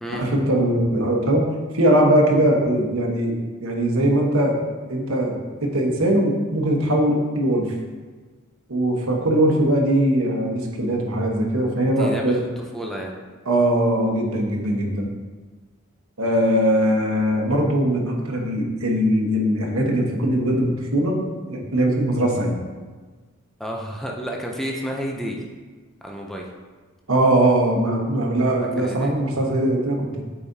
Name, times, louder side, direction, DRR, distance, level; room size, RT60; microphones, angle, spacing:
voice 1, 0.1-1.5 1.7-4.6 4.9-7.7 8.7-12.4 13.5-15.1 16.2-21.2 21.5-22.6 27.1-30.0, right 1 dB, 75° right, 0 dB, 1.2 m, -20 dB
voice 2, 11.8-13.1 23.6-25.4 26.0-26.5 28.8-29.1, equal, ahead, -1 dB, 0.5 m, -31 dB
8.3 x 4.9 x 2.7 m, 1.4 s
head